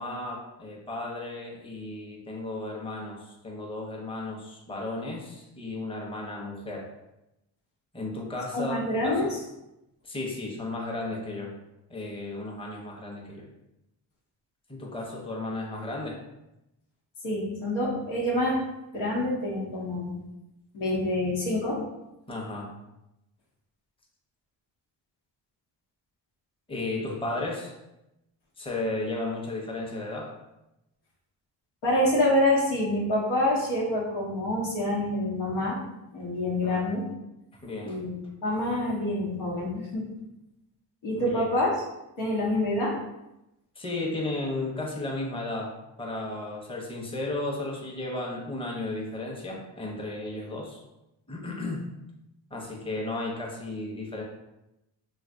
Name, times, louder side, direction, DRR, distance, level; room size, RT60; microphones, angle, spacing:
voice 1, 0.0-6.9 7.9-9.2 10.0-11.5 11.9-13.4 14.7-16.2 22.3-22.7 26.7-27.7 28.6-30.3 36.6-36.8 37.6-38.0 41.2-41.4 43.8-50.8 51.3-51.8 52.5-54.2, left 2 dB, 10° left, -1 dB, 0.8 m, -34 dB
voice 2, 8.5-9.4 17.2-18.6 18.9-20.2 20.7-21.8 31.8-35.8 36.1-37.1 37.8-40.1 41.0-41.7 42.2-43.0, left 1 dB, 85° left, -5 dB, 1.1 m, -27 dB
3.2 x 2.8 x 2.6 m, 0.91 s
supercardioid pair, 60°, 46 cm